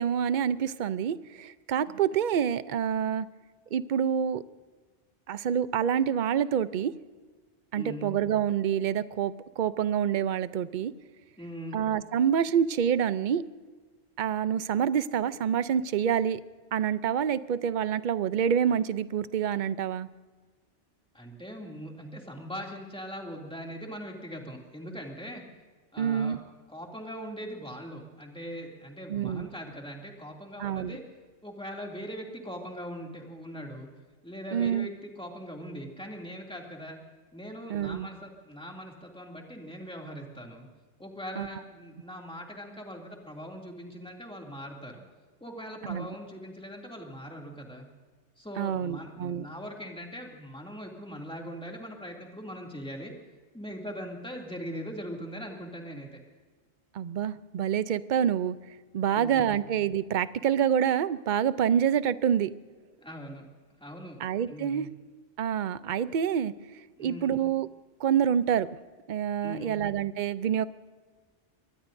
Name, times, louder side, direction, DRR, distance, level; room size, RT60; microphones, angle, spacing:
voice 1, 0.0-3.3 3.7-4.4 5.3-6.9 7.7-10.9 11.7-13.4 14.2-16.4 16.7-20.1 26.0-26.4 29.1-29.5 30.6-31.0 34.5-34.9 37.7-38.1 41.4-41.5 45.9-46.1 48.6-49.5 56.9-58.6 58.9-62.5 64.2-64.9 65.4-66.5 67.0-67.7 68.0-68.7 69.1-70.7, right 8 dB, 50° right, 15 dB, 0.6 m, -27 dB
voice 2, 7.7-8.2 11.4-11.8 21.1-25.4 25.9-26.4 26.7-31.0 31.4-33.9 34.2-37.0 37.3-40.7 41.0-45.0 45.4-47.9 48.4-53.1 53.5-56.2 59.0-59.6 63.0-63.5 63.8-64.2 64.5-64.9 67.0-67.4 69.4-69.8, equal, 5° left, 0 dB, 2.5 m, -41 dB
24.0 x 20.0 x 2.6 m, 1.4 s
omnidirectional pair, 1.2 m